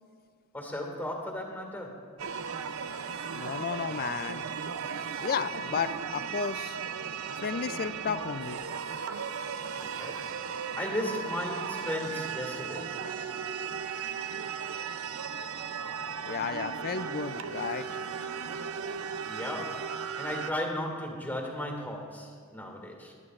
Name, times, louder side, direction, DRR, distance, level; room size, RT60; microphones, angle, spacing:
voice 1, 0.5-2.1 9.8-10.4 10.8-13.1 19.3-23.1, left 1 dB, 10° left, 1 dB, 1.9 m, -36 dB
sound 1, 2.2-20.5, right 6 dB, 75° right, 0.5 m, -36 dB
voice 2, 3.3-4.4 5.2-6.8 7.4-8.6 16.2-17.9, left 6 dB, 45° left, 14 dB, 0.4 m, -33 dB
19.5 x 12.0 x 2.5 m, 2.1 s
head